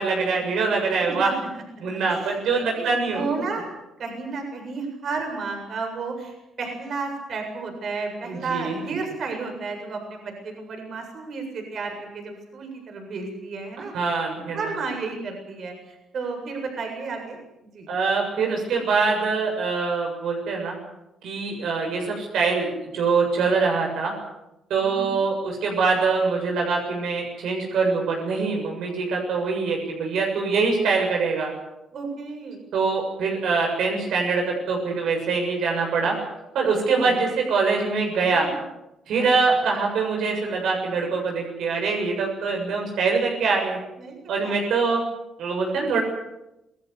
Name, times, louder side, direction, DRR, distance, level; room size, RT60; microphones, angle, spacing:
voice 1, 0.0-1.3 1.8-3.3 8.3-8.8 13.9-14.6 17.9-20.7 21.2-24.1 24.7-31.5 32.7-36.1 36.5-38.5 39.1-43.8 44.3-45.0 45.4-46.0, right 4 dB, 75° right, 1 dB, 7.3 m, -24 dB
voice 2, 1.0-1.6 1.9-3.7 4.0-13.9 14.5-17.4 17.7-17.9 24.8-25.2 31.9-32.6 36.9-37.2 38.4-38.5 39.5-39.6 44.0-44.9, right 4 dB, 60° right, 4 dB, 7.6 m, -32 dB
27.5 x 18.5 x 8.3 m, 0.90 s
cardioid pair, 90°, 0 cm